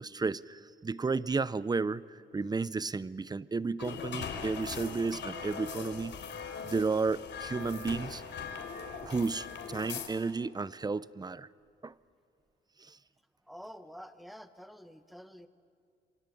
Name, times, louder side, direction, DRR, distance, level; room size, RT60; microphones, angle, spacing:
voice 1, 0.0-6.2 6.6-8.2 9.0-11.5 11.8-11.9 12.8-13.0, right 4 dB, 20° right, 19 dB, 0.7 m, -33 dB
sound 1, 3.8-10.1, left 6 dB, 65° left, 3.7 m, -40 dB
voice 2, 13.5-15.5, equal, ahead, 10 dB, 1.5 m, -48 dB
27.5 x 25.0 x 8.6 m, 2.4 s
cardioid pair, 90°, 20 cm